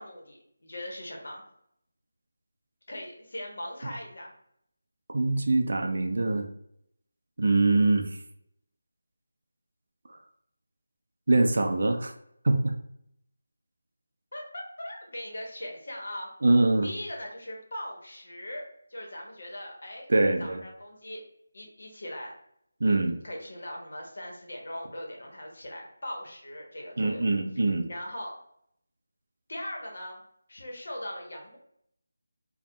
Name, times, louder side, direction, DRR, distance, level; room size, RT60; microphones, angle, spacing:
voice 1, 0.0-1.4 2.9-4.3 14.3-16.3 16.8-18.6 18.9-20.1 20.4-21.2 21.5-22.3 22.8-27.2 27.9-28.4 29.5-30.2 30.5-31.6, left 1 dB, 55° left, 0 dB, 0.8 m, -40 dB
voice 2, 5.1-6.5 7.4-8.2 10.1-10.2 11.3-12.1 12.4-12.8 16.4-16.9 20.1-20.6 22.8-23.2 27.0-27.9, right 2 dB, 50° right, 4 dB, 0.4 m, -23 dB
3.2 x 2.1 x 2.7 m, 0.73 s
figure-of-eight pair, 175°, 0 cm